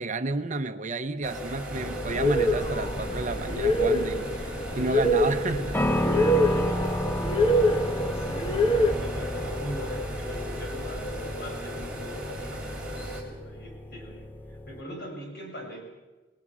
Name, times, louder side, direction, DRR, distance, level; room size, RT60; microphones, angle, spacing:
voice 1, 0.0-5.8, right 3 dB, 40° right, 0.9 m, -31 dB
sound 1, 1.2-13.2, equal, 5° right, 4.3 m, -36 dB
sound 2, 1.8-14.8, left 1 dB, 10° left, 0.7 m, -34 dB
sound 3, 2.0-8.9, equal, 30° left, 1.2 m, -25 dB
voice 2, 5.9-6.9 7.4-15.8, equal, 55° left, 7.2 m, -42 dB
29.0 x 19.0 x 6.2 m
head